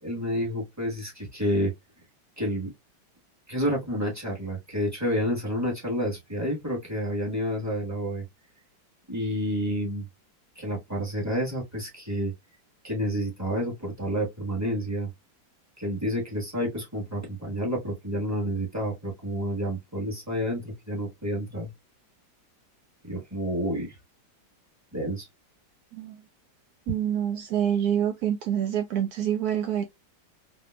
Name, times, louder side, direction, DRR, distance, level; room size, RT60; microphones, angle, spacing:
voice 1, 0.0-1.7 2.4-2.7 3.5-8.2 9.1-10.0 10.5-12.3 12.8-15.1 15.8-21.7 23.0-24.0 24.9-25.3, equal, 10° right, 1.0 m, -29 dB
voice 2, 26.9-29.8, right 10 dB, 75° right, 0.8 m, -26 dB
4.1 x 2.8 x 2.2 m
omnidirectional pair, 2.1 m